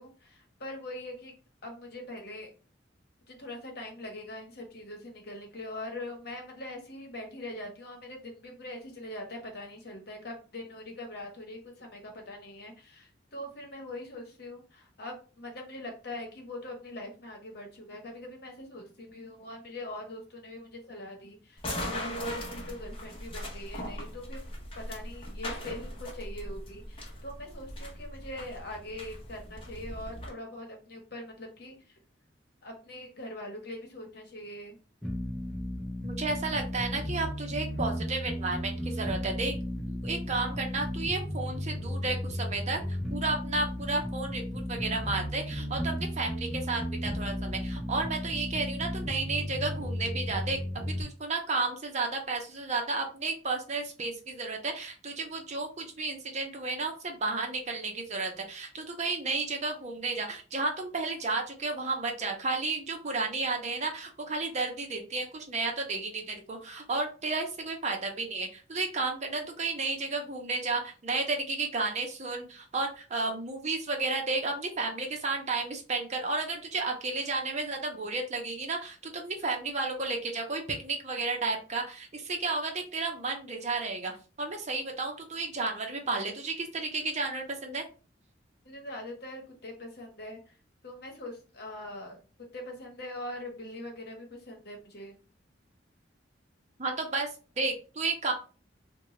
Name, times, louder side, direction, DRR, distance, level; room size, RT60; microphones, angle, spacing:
voice 1, 0.0-1.3 1.6-2.5 3.3-24.5 24.7-32.0 32.6-34.8 88.6-90.5 90.8-92.2 92.5-95.2, left 1 dB, 60° left, 2 dB, 1.0 m, -42 dB
sound 1, 21.6-30.3, equal, 30° left, 0.8 m, -39 dB
sound 2, 35.0-51.0, equal, ahead, 0.9 m, -34 dB
voice 2, 36.0-39.5 39.9-84.1 84.4-87.8 96.8-97.3 97.6-98.3, right 3 dB, 40° right, 3 dB, 0.7 m, -32 dB
3.7 x 2.2 x 3.0 m, 0.35 s
head